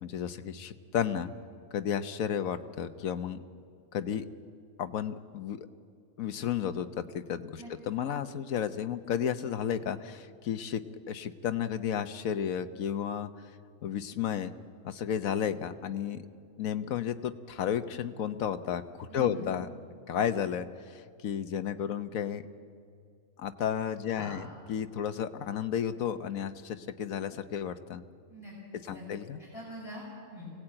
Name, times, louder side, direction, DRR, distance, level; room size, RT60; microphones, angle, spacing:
voice 1, 0.0-1.3 1.7-3.4 3.9-4.3 4.8-5.6 6.2-10.8 11.1-13.3 13.8-14.5 14.8-16.2 16.6-19.7 20.1-20.7 20.9-22.4 23.4-28.0 28.9-29.4, left 9 dB, 75° left, 10 dB, 1.3 m, -32 dB
voice 2, 19.1-19.4 24.1-24.4 28.3-29.0 29.4-30.5, equal, 45° left, -5 dB, 6.8 m, -43 dB
24.5 x 17.5 x 8.8 m, 2.3 s
omnidirectional pair, 1.5 m